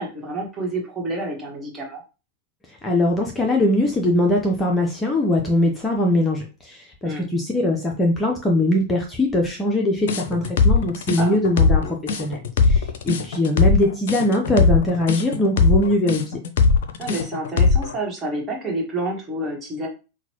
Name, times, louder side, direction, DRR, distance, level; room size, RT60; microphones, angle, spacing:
voice 1, 0.0-2.0 7.0-7.3 11.2-11.4 17.0-19.9, right 2 dB, 20° right, -1 dB, 1.5 m, -29 dB
voice 2, 2.8-11.8 12.2-16.4, left 1 dB, 15° left, 1 dB, 0.8 m, -21 dB
sound 1, 10.1-17.9, left 4 dB, 55° left, 0.6 m, -19 dB
5.7 x 2.3 x 2.9 m, 0.32 s
figure-of-eight pair, 90°, 0 cm